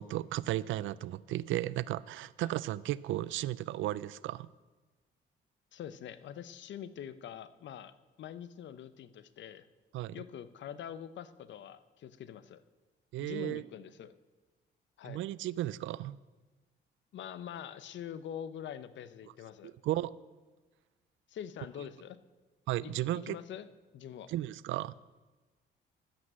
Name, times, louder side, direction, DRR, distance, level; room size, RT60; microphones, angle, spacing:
voice 1, 0.0-4.5 9.9-10.2 13.1-13.6 15.0-16.2 19.6-20.1 22.7-23.4 24.3-24.9, right 15 dB, 80° right, 19 dB, 0.4 m, -34 dB
voice 2, 5.7-9.7 10.1-12.6 13.2-14.2 15.0-15.2 17.1-19.7 21.3-22.2 22.8-23.7 23.9-24.3, left 9 dB, 70° left, 14 dB, 0.7 m, -44 dB
11.5 x 8.2 x 7.4 m, 1.3 s
cardioid pair, 90°, 20 cm